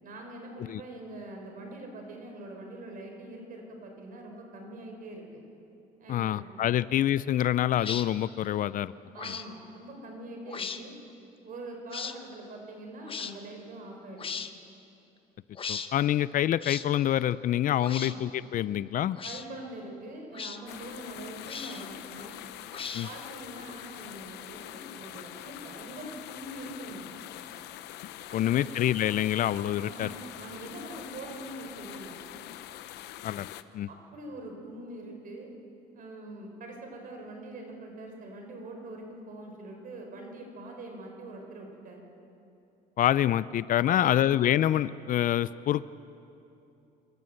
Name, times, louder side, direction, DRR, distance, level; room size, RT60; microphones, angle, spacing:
voice 1, 0.0-5.4 6.0-6.5 9.1-11.0 11.4-14.3 17.9-18.2 19.2-22.4 23.0-27.1 28.3-28.7 29.8-32.2 33.9-35.5 35.9-42.0 43.8-44.3, right 1 dB, 55° right, 3 dB, 4.5 m, -43 dB
voice 2, 6.1-8.9 9.2-9.3 15.7-19.2 22.9-23.1 28.3-30.1 33.2-33.5 33.7-33.9 43.0-45.8, left 12 dB, 55° left, 18 dB, 0.4 m, -26 dB
sound 1, 7.8-8.1 9.2-9.5 10.5-10.8 11.9-12.2 13.1-13.3 14.2-14.5 15.6-15.9 16.6-16.9 17.8-18.2 19.1-19.5 20.3-20.6 21.5-21.9 22.7-23.2, left 6 dB, 30° left, 0.9 m, -37 dB
sound 2, 20.7-33.6, left 13 dB, 85° left, 0.7 m, -44 dB
26.0 x 14.0 x 7.8 m, 2.8 s
cardioid pair, 110°, 17 cm